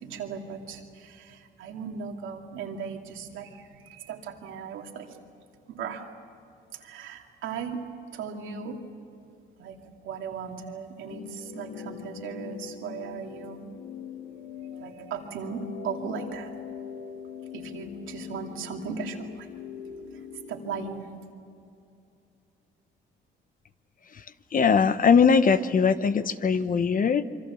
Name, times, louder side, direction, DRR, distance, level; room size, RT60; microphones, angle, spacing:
voice 1, 0.0-5.1 5.7-6.0 6.7-7.8 8.1-8.8 9.6-9.8 10.0-13.6 14.7-16.5 17.5-19.5 20.1-20.2 20.5-21.1, right 6 dB, 85° right, 2 dB, 2.5 m, -37 dB
sound 1, 11.1-21.0, left 7 dB, 80° left, 1.6 m, -42 dB
voice 2, 24.5-27.2, left 6 dB, 45° left, 12 dB, 1.0 m, -21 dB
26.0 x 24.0 x 7.1 m, 2.6 s
cardioid pair, 90°, 20 cm